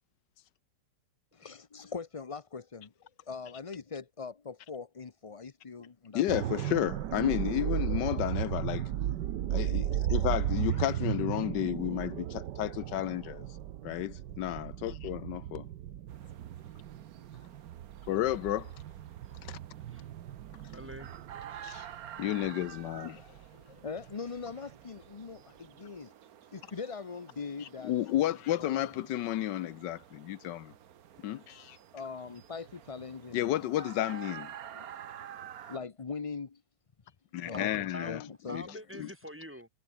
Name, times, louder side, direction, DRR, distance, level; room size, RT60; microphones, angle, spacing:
voice 1, 1.3-2.9 3.3-6.4 10.7-10.9 22.3-22.5 23.5-26.1 26.5-27.9 28.6-28.9 31.9-33.7 34.7-34.9 35.7-36.6 37.4-38.6, left 5 dB, 40° left, 0.4 m, -41 dB
voice 2, 6.1-8.9 9.5-13.4 13.8-15.7 18.1-18.7 19.4-19.6 21.6-21.9 22.2-23.4 27.6-30.7 31.2-31.8 33.3-34.5 37.3-38.2 38.5-38.6 38.9-39.1, left 13 dB, 80° left, 1.4 m, -32 dB
sound 1, 6.3-24.1 24.5-24.7, right 11 dB, 80° right, 1.5 m, -35 dB
sound 2, 16.1-35.8, right 10 dB, 60° right, 1.4 m, -50 dB
voice 3, 20.7-21.2 37.5-38.1 38.5-39.7, equal, 5° right, 3.5 m, -45 dB
omnidirectional pair, 1.9 m